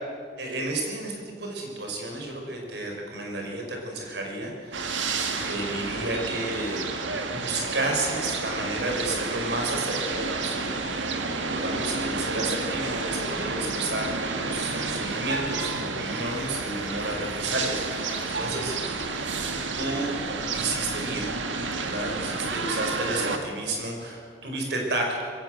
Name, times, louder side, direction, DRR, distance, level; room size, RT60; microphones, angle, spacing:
voice 1, 0.4-6.8 7.3-14.1 14.4-19.0 19.7-20.1 20.5-21.4 21.8-25.2, right 2 dB, 60° right, 1 dB, 5.0 m, -32 dB
sound 1, 4.7-23.4, right 3 dB, 80° right, 2.0 m, -30 dB
21.0 x 17.0 x 7.8 m, 2.1 s
head